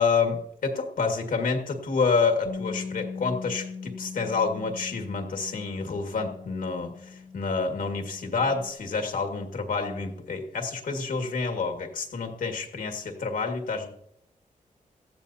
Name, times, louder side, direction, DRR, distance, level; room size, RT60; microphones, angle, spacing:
voice 1, 0.0-13.9, left 4 dB, 85° left, 4 dB, 1.9 m, -28 dB
Bass guitar, 2.5-8.7, left 5 dB, 50° left, 0.9 m, -40 dB
18.0 x 14.0 x 2.8 m, 0.74 s
wide cardioid pair, 105°, 14 cm